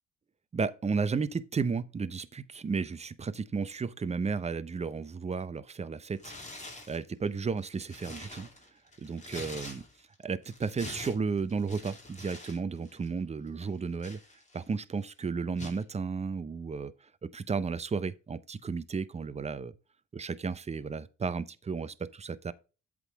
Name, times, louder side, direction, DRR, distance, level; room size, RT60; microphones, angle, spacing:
voice 1, 0.5-6.6 6.9-8.5 9.0-9.8 10.2-14.2 14.5-16.9 17.2-19.7 20.1-22.5, right 5 dB, 20° right, 0.5 m, -33 dB
Tearing, 6.2-7.0 7.5-10.1 10.4-12.6 12.9-13.1 13.6-14.8 15.6-15.8, left 2 dB, 25° left, 2.4 m, -45 dB
8.1 x 3.7 x 4.9 m
cardioid pair, 90°, 30 cm